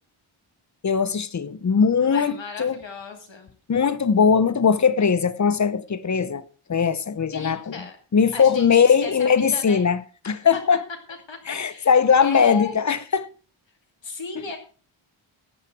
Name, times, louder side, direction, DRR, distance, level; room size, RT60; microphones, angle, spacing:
voice 1, 0.8-2.8 3.7-6.4 6.7-7.8 8.1-10.8 11.5-13.3 14.4-14.5, left 6 dB, 35° left, 0.8 m, -20 dB
voice 2, 2.0-3.5 7.3-8.0 8.3-9.8 11.3-11.9 12.2-12.8 14.0-14.6, left 4 dB, 60° left, 2.6 m, -35 dB
14.0 x 8.8 x 4.7 m
wide cardioid pair, 125°, 50 cm